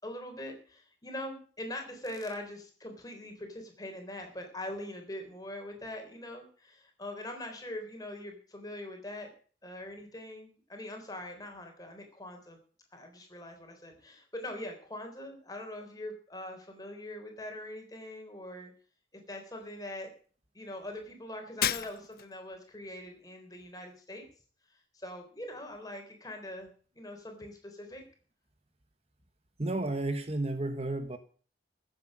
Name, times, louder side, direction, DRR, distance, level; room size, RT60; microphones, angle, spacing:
voice 1, 0.0-9.3 9.6-12.6 12.9-18.7 19.1-20.1 20.5-24.2 24.9-28.0, left 1 dB, 20° left, 3.8 m, -42 dB
Shatter, 21.6-22.4, left 10 dB, 55° left, 0.6 m, -32 dB
voice 2, 29.6-31.2, right 2 dB, 35° right, 1.1 m, -32 dB
14.5 x 8.0 x 7.6 m
head